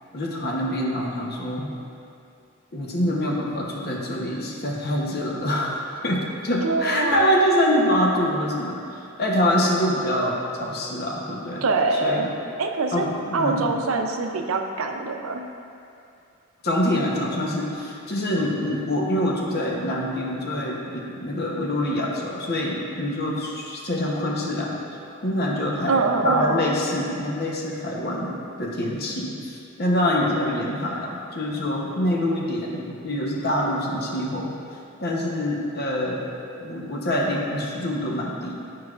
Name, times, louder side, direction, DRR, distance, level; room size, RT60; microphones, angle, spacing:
voice 1, 0.1-1.7 2.7-5.8 6.0-11.6 12.0-12.3 12.9-13.7 16.6-24.8 25.2-34.5 35.0-36.3 36.6-38.6, left 1 dB, 50° left, -2 dB, 0.9 m, -25 dB
voice 2, 6.6-7.4 11.6-12.3 12.6-13.1 13.3-15.4 25.9-26.6, right 3 dB, 80° right, 4 dB, 0.5 m, -24 dB
11.0 x 4.7 x 2.4 m, 2.6 s
head